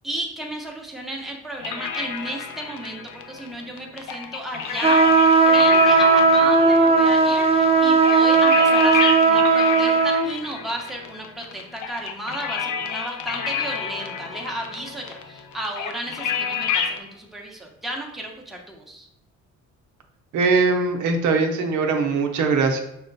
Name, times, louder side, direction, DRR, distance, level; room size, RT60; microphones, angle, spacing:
voice 1, 0.0-19.1, right 1 dB, ahead, -1 dB, 0.8 m, -33 dB
sound 1, 1.6-17.0, left 7 dB, 80° left, 0.6 m, -30 dB
sound 2, 4.8-10.3, right 3 dB, 20° right, 0.4 m, -16 dB
voice 2, 20.3-22.8, right 4 dB, 80° right, 4 dB, 0.7 m, -21 dB
5.7 x 2.1 x 3.9 m, 0.82 s
cardioid pair, 90°, 30 cm